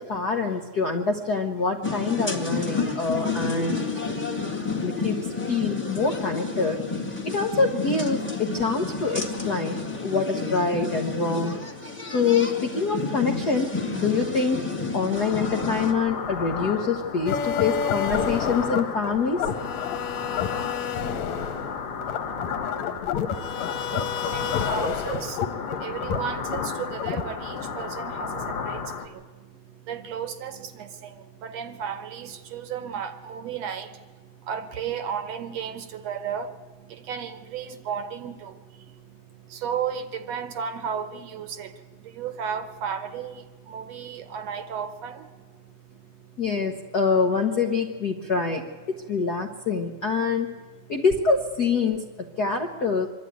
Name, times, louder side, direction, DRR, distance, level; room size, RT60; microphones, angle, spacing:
voice 1, 0.0-3.8 4.8-6.8 7.2-11.6 12.1-14.7 14.9-19.4 46.4-48.6 48.9-50.5 50.9-53.1, left 4 dB, 85° left, 0.8 m, -25 dB
sound 1, 1.8-15.9, left 4 dB, 5° left, 0.8 m, -30 dB
sound 2, 15.1-29.1, left 5 dB, 50° left, 2.1 m, -33 dB
sound 3, 17.3-27.6, left 8 dB, 70° left, 2.2 m, -29 dB
voice 2, 23.9-25.5 25.8-29.5 29.8-34.1 34.4-39.2 39.5-45.3, right 7 dB, 70° right, 1.8 m, -34 dB
24.5 x 12.5 x 9.2 m
omnidirectional pair, 3.5 m